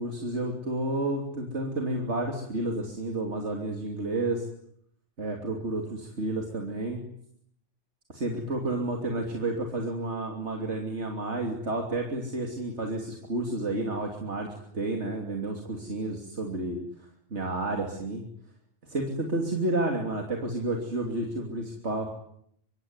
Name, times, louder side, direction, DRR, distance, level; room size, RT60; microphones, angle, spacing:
voice 1, 0.0-4.5 5.2-7.0 8.1-14.5 14.7-16.8 17.3-18.2 18.8-22.1, right 2 dB, 90° right, 2 dB, 3.4 m, -31 dB
25.0 x 24.0 x 9.7 m, 0.71 s
omnidirectional pair, 1.1 m